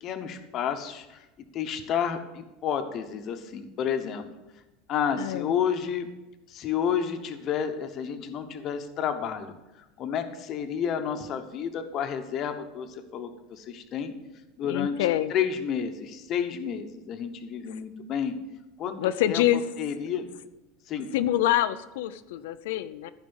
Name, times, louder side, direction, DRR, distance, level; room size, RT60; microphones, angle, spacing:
voice 1, 0.0-1.3 1.5-4.3 4.9-6.1 6.5-9.5 10.0-14.1 14.6-14.9 15.3-18.4 18.8-19.0 19.3-19.4 19.8-20.3 20.9-21.1, left 8 dB, 30° left, 8 dB, 1.0 m, -30 dB
voice 2, 14.6-15.3 17.7-17.8 19.0-19.6 21.1-23.1, left 13 dB, 85° left, 10 dB, 0.5 m, -26 dB
14.5 x 5.1 x 7.0 m, 1.0 s
cardioid pair, 175°, 0 cm